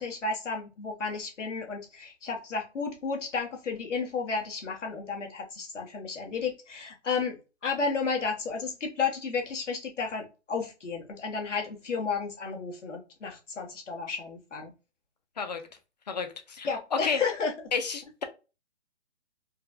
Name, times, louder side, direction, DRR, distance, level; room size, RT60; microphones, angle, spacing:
voice 1, 0.0-14.7 16.6-17.5, left 5 dB, 90° left, 1.5 m, -32 dB
voice 2, 16.1-17.2 17.7-18.2, left 5 dB, 35° left, 0.5 m, -31 dB
4.4 x 2.2 x 2.6 m
hypercardioid pair, 165°, 35 cm